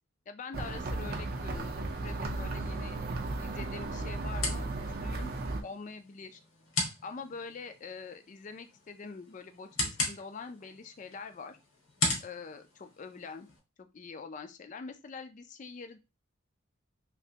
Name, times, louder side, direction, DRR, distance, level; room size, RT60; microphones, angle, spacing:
voice 1, 0.3-3.0 3.4-4.7 5.0-5.3 5.6-6.4 7.0-11.6 12.2-13.5 13.8-16.0, left 4 dB, 35° left, 8 dB, 0.3 m, -44 dB
sound 1, 0.5-5.6, right 2 dB, 45° right, 0.5 m, -35 dB
sound 2, 2.6-13.6, left 2 dB, 75° left, 1.3 m, -39 dB
3.2 x 2.9 x 2.7 m, 0.27 s
head